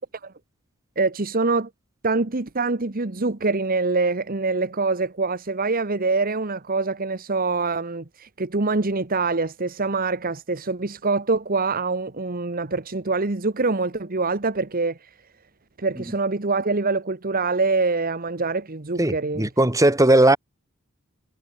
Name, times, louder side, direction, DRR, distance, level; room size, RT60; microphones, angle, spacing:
voice 1, 1.0-1.7 2.0-15.0 15.8-19.5, right 3 dB, 45° right, 1.3 m, -24 dB
voice 2, 19.0-20.4, right 1 dB, 15° right, 2.5 m, -17 dB
head